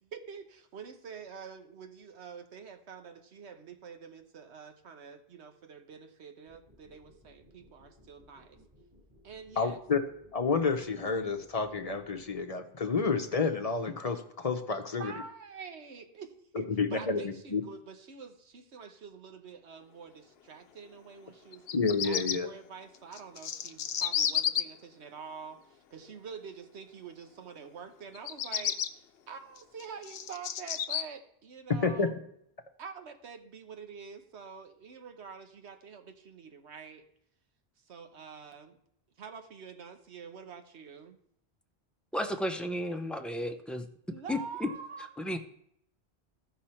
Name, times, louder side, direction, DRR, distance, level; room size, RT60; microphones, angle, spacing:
voice 1, 0.0-8.6 9.2-9.8 15.0-21.7 22.0-28.8 29.3-32.1 32.8-37.0 37.9-38.8 39.2-41.2 44.1-45.4, right 6 dB, 90° right, 7 dB, 1.2 m, -46 dB
sound 1, 6.5-12.4, equal, 30° right, 4.0 m, -60 dB
voice 2, 9.6-10.0 10.3-15.1 16.5-17.6 21.7-22.5 31.7-32.1, left 4 dB, 40° left, 5 dB, 0.7 m, -30 dB
Bird vocalization bird call bird song, 21.5-22.4 23.1-24.6 28.1-28.9 29.6-31.0, left 9 dB, 70° left, 0.8 m, -31 dB
voice 3, 42.1-43.9 44.3-44.7 45.2-45.4, left 1 dB, ahead, 5 dB, 0.4 m, -33 dB
14.5 x 5.5 x 4.3 m, 0.72 s
omnidirectional pair, 1.1 m